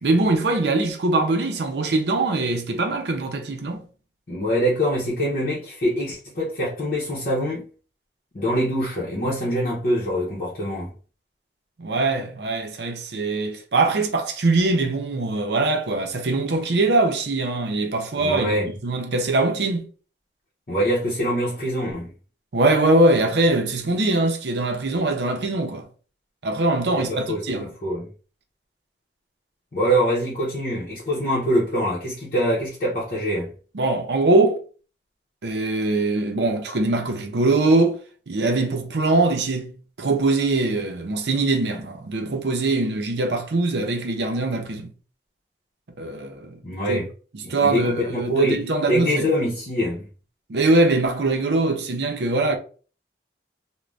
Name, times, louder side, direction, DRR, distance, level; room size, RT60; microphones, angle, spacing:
voice 1, 0.0-3.8 11.8-19.9 22.5-25.8 26.4-27.7 33.7-34.6 35.4-38.0 38.3-44.9 46.0-46.6 46.9-47.0 47.3-49.3 50.5-52.6, right 2 dB, 75° right, 0.6 m, -22 dB
voice 2, 4.3-7.6 8.3-10.9 18.2-18.7 20.7-22.1 27.1-28.1 29.7-33.5 46.6-47.1 47.4-50.1, equal, 50° left, 0.8 m, -24 dB
2.5 x 2.2 x 3.2 m
head